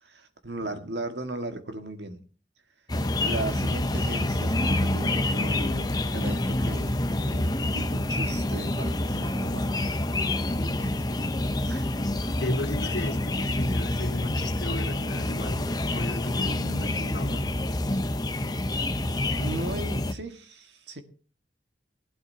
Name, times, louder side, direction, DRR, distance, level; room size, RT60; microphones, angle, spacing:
voice 1, 0.0-2.2 3.2-10.1 10.6-12.0 16.3-16.8 19.4-21.0, right 1 dB, 75° right, 1.8 m, -38 dB
sound 1, 2.9-20.1, left 1 dB, 20° left, 0.8 m, -27 dB
voice 2, 12.3-17.5, left 1 dB, 80° left, 3.1 m, -34 dB
20.0 x 12.0 x 2.8 m
head